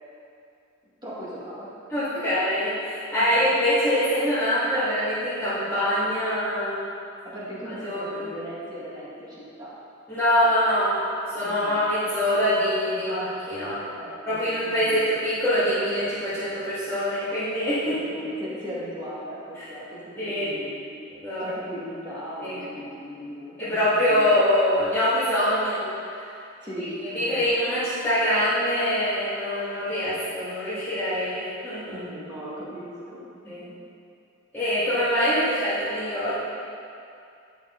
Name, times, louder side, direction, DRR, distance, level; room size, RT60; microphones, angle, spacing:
voice 1, 1.0-1.7 3.2-3.4 7.2-9.7 11.4-11.8 13.6-15.0 17.9-20.9 21.4-24.2 26.6-27.4 31.9-33.8 34.8-34.9, equal, 20° right, -9 dB, 2.2 m, -38 dB
voice 2, 1.9-6.8 7.8-8.3 10.1-11.0 11.3-13.8 14.3-17.9 19.5-19.6 20.2-20.6 21.1-21.4 22.4-22.6 23.6-25.9 26.8-26.9 27.1-32.0 33.5-33.6 34.5-36.4, equal, 10° left, -17 dB, 2.1 m, -24 dB
10.5 x 6.1 x 4.0 m, 2.5 s
head